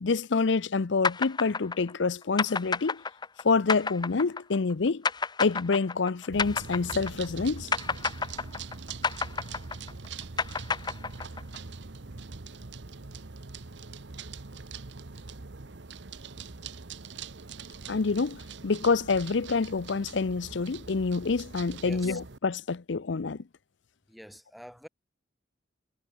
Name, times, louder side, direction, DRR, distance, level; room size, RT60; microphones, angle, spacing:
voice 1, 0.0-3.0 3.4-5.0 5.4-7.7 17.9-23.4, left 4 dB, 70° left, 0.6 m, -27 dB
sound 1, 1.0-7.4 7.7-11.6, left 5 dB, 25° left, 0.8 m, -30 dB
sound 2, 6.3-22.4, right 4 dB, 65° right, 1.1 m, -43 dB
voice 2, 21.8-22.2 24.1-24.9, equal, ahead, 2.6 m, -45 dB
head